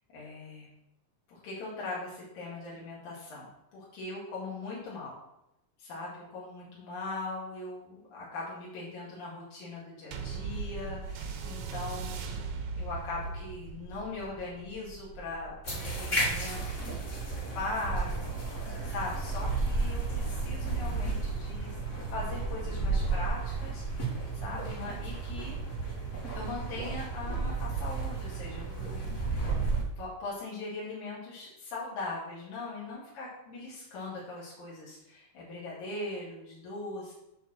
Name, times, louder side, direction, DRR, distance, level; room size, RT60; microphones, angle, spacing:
voice 1, 0.1-0.7 1.3-5.1 5.8-12.4 12.7-17.2 17.5-21.7 22.1-25.6 26.3-29.4 30.0-37.1, left 2 dB, 75° left, -6 dB, 3.6 m, -40 dB
sound 1, 10.1-18.9 19.6-19.7, right 5 dB, 80° right, 1.0 m, -40 dB
sound 2, 15.6-29.8, right 3 dB, 25° left, 2.2 m, -33 dB
8.9 x 4.5 x 6.1 m, 0.85 s
omnidirectional pair, 3.4 m